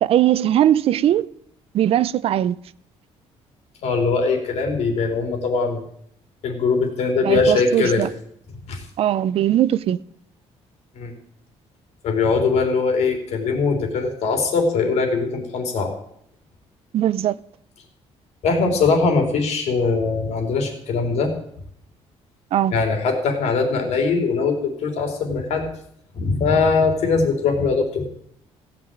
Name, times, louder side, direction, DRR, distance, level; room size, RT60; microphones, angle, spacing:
voice 1, 0.0-1.3 1.7-2.6 7.2-8.1 9.0-10.0 16.9-17.4 22.5-22.7, right 11 dB, 55° right, 0.5 m, -19 dB
voice 2, 3.8-5.8 6.4-8.1 8.7-8.8 10.9-11.1 12.0-15.9 18.4-21.3 22.7-25.7 26.1-28.1, left 4 dB, 70° left, 3.3 m, -21 dB
16.0 x 6.1 x 8.9 m
cardioid pair, 155°, 12 cm